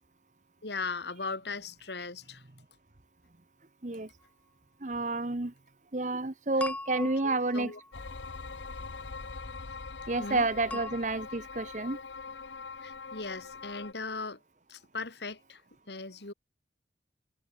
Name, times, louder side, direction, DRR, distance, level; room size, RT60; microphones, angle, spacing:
voice 1, 0.6-2.4 7.0-7.8 10.2-10.8 12.8-14.4 14.7-15.6 15.9-16.3, left 3 dB, 70° left, 2.3 m, -38 dB
voice 2, 4.8-5.5 5.9-7.7 10.1-12.0, right 2 dB, 40° right, 1.0 m, -30 dB
sound 1, 6.6-8.2 10.7-10.9, left 2 dB, 10° left, 1.4 m, -39 dB
sound 2, 7.9-13.9, left 4 dB, 90° left, 1.2 m, -42 dB
head